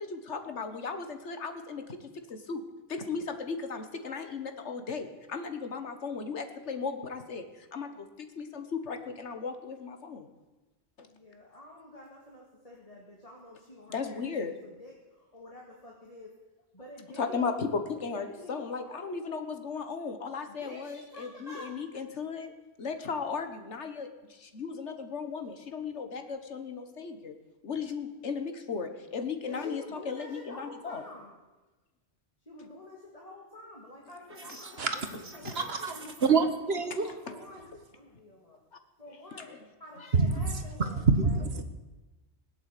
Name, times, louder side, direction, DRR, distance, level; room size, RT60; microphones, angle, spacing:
voice 1, 0.0-2.6 2.9-10.3 11.0-11.1 13.9-14.6 17.1-22.5 22.8-27.3 27.6-31.0 39.4-39.6, left 5 dB, 85° left, 1.7 m, -36 dB
voice 2, 11.0-16.3 16.7-17.5 18.1-18.5 18.8-19.0 20.5-21.7 29.5-31.4 32.5-36.4 37.0-38.6 39.0-41.4, left 1 dB, 35° left, 2.3 m, -48 dB
sound 1, 34.3-36.5, right 3 dB, 80° right, 2.0 m, -48 dB
voice 3, 35.4-35.9 36.2-37.1 40.4-40.5 41.1-41.6, right 4 dB, 65° right, 1.7 m, -26 dB
20.0 x 8.4 x 8.4 m
omnidirectional pair, 1.2 m